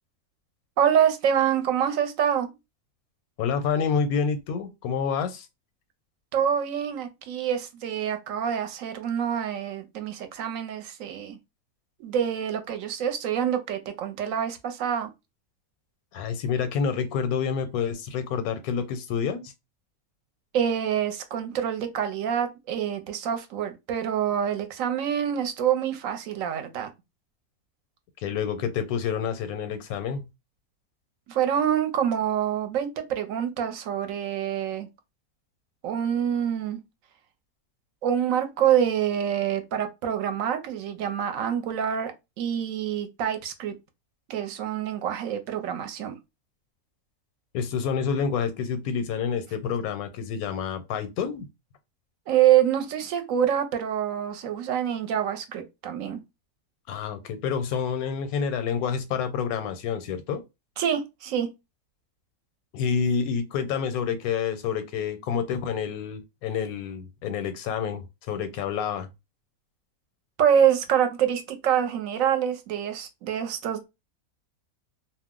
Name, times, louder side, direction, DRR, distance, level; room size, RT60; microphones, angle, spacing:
voice 1, 0.8-2.5 6.3-11.4 12.0-15.1 20.5-26.9 31.3-34.9 35.8-36.8 38.0-42.1 42.4-43.7 44.3-46.2 52.3-56.2 60.8-61.5 70.4-73.9, right 9 dB, 75° right, 0.9 m, -26 dB
voice 2, 3.4-5.5 16.1-19.5 28.2-30.2 47.5-51.5 56.9-60.4 62.7-69.1, left 6 dB, 85° left, 1.1 m, -28 dB
2.5 x 2.0 x 3.6 m
omnidirectional pair, 1.5 m